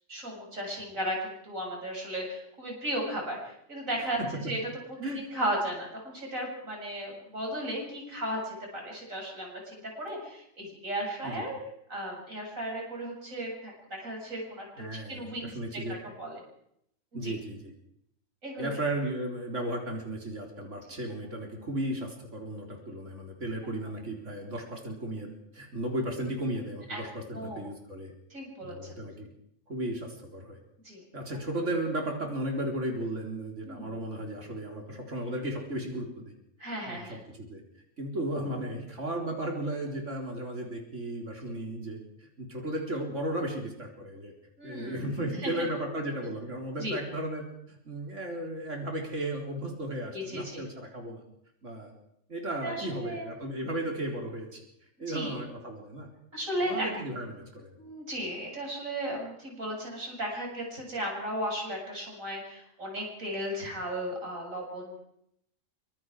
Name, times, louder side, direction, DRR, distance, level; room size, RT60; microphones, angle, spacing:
voice 1, 0.1-4.2 4.5-4.6 5.1-11.6 11.9-14.7 15.1-16.4 17.1-17.3 18.4-18.7 26.9-27.0 27.3-27.7 28.3-29.0 30.8-31.0 33.6-34.0 36.6-37.2 44.6-45.0 45.4-45.5 46.8-47.0 50.1-50.6 52.6-53.3 55.1-55.4 56.3-56.9 57.8-65.0, right 1 dB, 80° right, -1 dB, 8.0 m, -35 dB
voice 2, 4.2-4.5 5.0-5.2 11.2-11.4 14.8-16.0 17.1-17.7 18.6-28.1 28.6-29.3 29.7-30.6 31.1-36.3 36.8-37.6 38.0-44.3 44.6-51.2 51.6-51.9 52.3-54.6 55.0-56.1 56.6-57.7, right 1 dB, 65° right, 1 dB, 4.4 m, -35 dB
25.5 x 25.5 x 4.9 m, 0.73 s
omnidirectional pair, 1.4 m